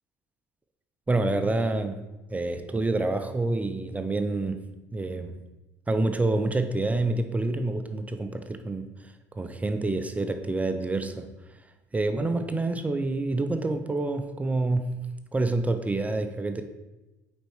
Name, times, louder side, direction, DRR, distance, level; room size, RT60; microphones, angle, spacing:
voice 1, 1.1-2.0 2.3-5.4 5.9-11.6 11.9-15.1 15.3-16.6, right 2 dB, 15° right, 8 dB, 0.5 m, -28 dB
5.0 x 4.5 x 4.6 m, 1.1 s
supercardioid pair, 85°, 9 cm